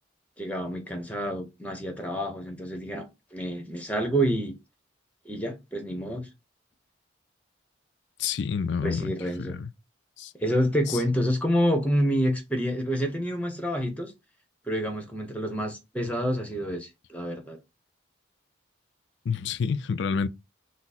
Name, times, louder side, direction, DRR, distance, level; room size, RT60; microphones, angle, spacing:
voice 1, 0.4-4.5 5.2-6.3 8.8-9.5 10.4-14.1 14.7-17.6, equal, 10° left, 0.9 m, -28 dB
voice 2, 8.2-9.1 9.4-9.7 10.2-10.3 10.9-11.0 19.3-20.3, left 6 dB, 65° left, 0.4 m, -28 dB
5.8 x 2.1 x 4.1 m
head